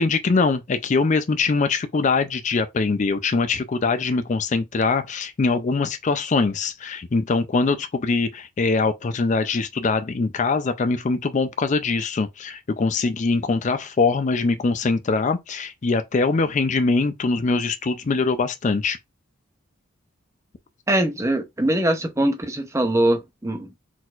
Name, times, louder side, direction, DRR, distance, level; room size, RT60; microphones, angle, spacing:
voice 1, 0.0-19.0, left 4 dB, 35° left, 0.4 m, -22 dB
voice 2, 20.9-23.7, right 1 dB, 15° right, 0.6 m, -22 dB
4.3 x 4.0 x 2.4 m
head